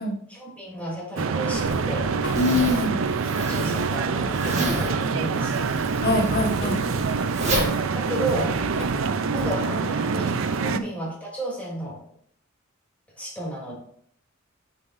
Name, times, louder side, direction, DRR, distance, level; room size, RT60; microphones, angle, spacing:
voice 1, 0.3-2.1 3.4-5.7 7.4-8.6 9.3-12.0 13.2-13.8, right 1 dB, 5° left, -5 dB, 3.0 m, -32 dB
Drum kit / Drum, 1.2-1.3 1.6-2.9 3.2-3.4 3.8-5.1 5.4-9.8, left 2 dB, 85° left, 3.5 m, -39 dB
sound 1, 1.2-10.8, right 5 dB, 70° right, 0.5 m, -25 dB
Zipper (clothing), 1.5-8.9, right 1 dB, 35° right, 1.6 m, -32 dB
voice 2, 2.3-3.0 6.0-6.8 10.6-10.8, left 2 dB, 50° left, 2 dB, 1.4 m, -24 dB
10.0 x 5.7 x 2.6 m, 0.64 s
head